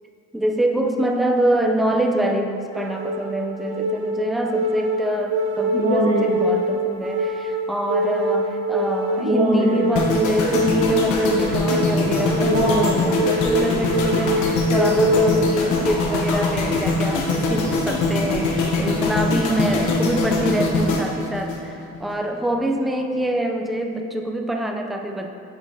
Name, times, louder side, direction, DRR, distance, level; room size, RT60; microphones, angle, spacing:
voice 1, 0.3-25.3, right 1 dB, ahead, 3 dB, 0.3 m, -25 dB
sound 1, 2.7-15.7, right 1 dB, 55° right, 1.4 m, -23 dB
sound 2, 10.0-22.1 22.4-22.7, left 3 dB, 80° left, 1.0 m, -23 dB
8.8 x 5.2 x 2.7 m, 2.5 s
cardioid pair, 120°, 30 cm